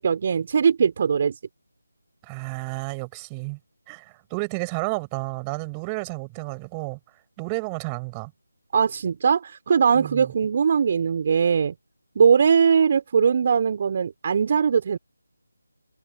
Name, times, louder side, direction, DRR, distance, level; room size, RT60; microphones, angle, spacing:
voice 1, 0.0-1.4 8.7-11.7 12.2-15.0, right 6 dB, 35° right, 4.1 m, -20 dB
voice 2, 2.2-3.6 3.9-7.0 7.4-8.3 10.0-10.3, right 32 dB, 15° right, 7.0 m, -31 dB
figure-of-eight pair, 160°, 0 cm